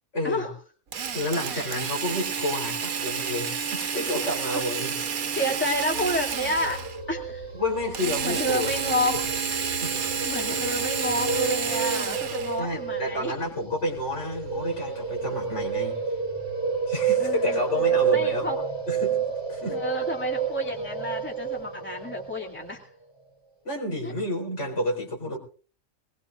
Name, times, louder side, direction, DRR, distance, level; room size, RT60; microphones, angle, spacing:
voice 1, 0.1-0.5 1.1-4.9 7.5-9.1 9.8-10.0 12.6-16.0 16.9-18.5 18.9-19.8 23.6-25.4, left 1 dB, 55° left, -1 dB, 4.6 m, -30 dB
Drill, 0.9-7.0 7.9-12.6, right 7 dB, 80° right, 1.5 m, -30 dB
voice 2, 5.4-7.5 8.2-9.2 10.2-13.3 17.2-18.6 19.7-22.9 24.0-24.1, equal, 10° left, -1 dB, 2.6 m, -30 dB
sound 1, 5.8-22.7, right 6 dB, 25° left, 3.8 m, -30 dB
22.0 x 20.5 x 2.6 m, 0.41 s
omnidirectional pair, 1.5 m